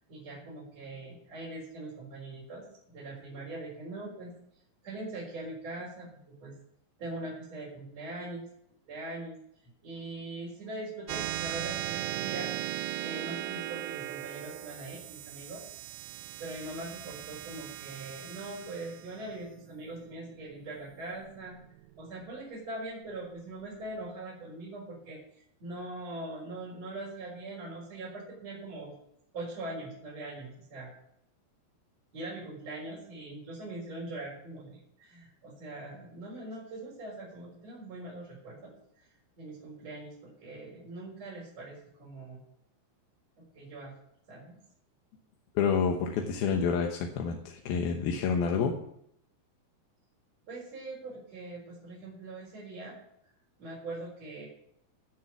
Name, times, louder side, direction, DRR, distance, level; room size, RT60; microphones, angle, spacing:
voice 1, 0.1-4.3 4.8-6.5 7.0-8.5 8.9-9.4 9.8-12.5 13.0-15.6 16.4-21.6 22.0-28.9 29.3-30.9 32.1-38.7 39.0-39.1 39.4-42.4 43.5-43.9 44.3-44.6 50.5-52.9 53.6-54.5, right 2 dB, 40° right, -7 dB, 5.4 m, -42 dB
sound 1, 11.1-21.9, right 14 dB, 85° right, 2.8 m, -38 dB
voice 2, 45.6-48.7, left 6 dB, 70° left, 2 dB, 2.7 m, -28 dB
17.0 x 7.3 x 6.1 m, 0.72 s
omnidirectional pair, 4.9 m